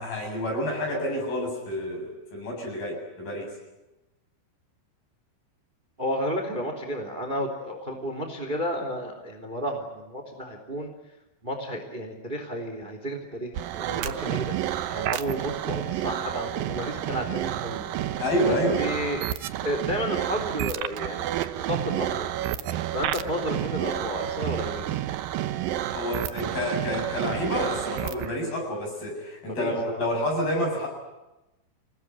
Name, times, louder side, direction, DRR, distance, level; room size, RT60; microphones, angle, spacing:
voice 1, 0.0-3.5 18.2-18.9 25.9-30.9, equal, 50° left, 1 dB, 9.5 m, -29 dB
voice 2, 6.0-10.9 11.4-14.6 14.9-17.8 18.5-19.2 19.6-21.2 21.6-22.3 22.9-25.0 29.5-30.0, equal, 15° right, 5 dB, 2.6 m, -32 dB
sound 1, 13.5-28.3, right 12 dB, 75° right, 2.1 m, -30 dB
27.5 x 19.0 x 9.8 m, 0.99 s
omnidirectional pair, 5.4 m